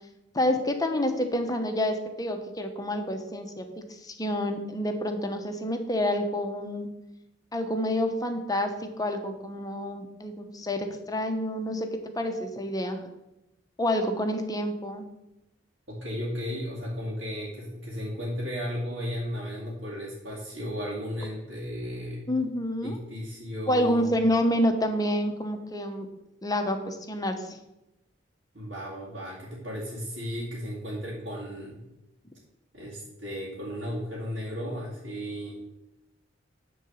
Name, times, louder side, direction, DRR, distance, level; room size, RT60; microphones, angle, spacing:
voice 1, 0.3-6.9 7.5-13.0 13.8-15.1 22.3-23.0 23.7-26.1 26.4-27.6, left 1 dB, 20° left, 6 dB, 0.9 m, -28 dB
voice 2, 15.9-22.3 22.8-24.1 28.5-31.8 32.7-35.5, equal, 75° right, -7 dB, 2.2 m, -35 dB
9.7 x 3.9 x 7.1 m, 0.92 s
head